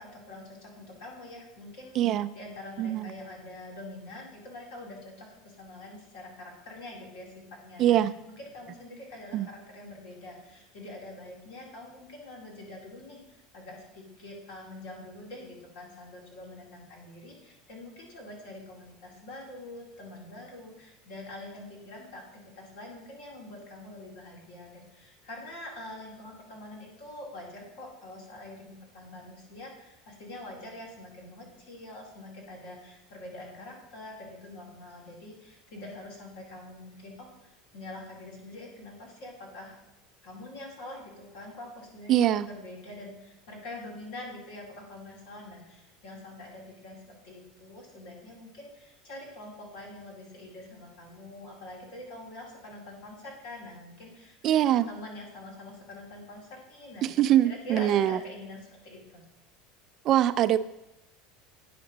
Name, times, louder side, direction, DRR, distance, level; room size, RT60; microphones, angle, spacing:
voice 1, 0.0-2.0 2.3-39.8 40.2-57.1 57.4-59.2, left 1 dB, 75° left, -2 dB, 2.4 m, -45 dB
voice 2, 2.0-2.3 2.8-3.1 7.8-8.1 9.3-9.5 42.1-42.5 54.4-54.9 57.0-58.2 60.0-60.6, right 12 dB, 50° right, 13 dB, 0.3 m, -23 dB
9.4 x 5.1 x 3.9 m, 0.92 s
supercardioid pair, 100°, 0 cm